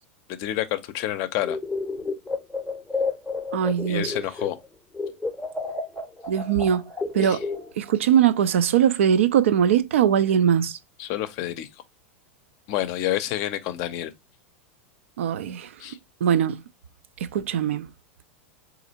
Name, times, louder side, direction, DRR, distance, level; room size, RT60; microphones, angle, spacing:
voice 1, 0.4-1.6 3.9-4.6 7.2-7.4 11.0-11.7 12.7-14.1 15.8-16.0, left 13 dB, 50° left, 0.5 m, -28 dB
sound 1, 1.4-4.7 4.9-8.0, left 3 dB, 10° left, 0.6 m, -31 dB
voice 2, 3.5-4.1 6.3-6.8 7.1-7.5 7.8-10.8 15.2-15.7 16.2-16.6 17.3-17.9, right 9 dB, 70° right, 0.4 m, -21 dB
4.1 x 2.5 x 2.8 m
hypercardioid pair, 95°, 7 cm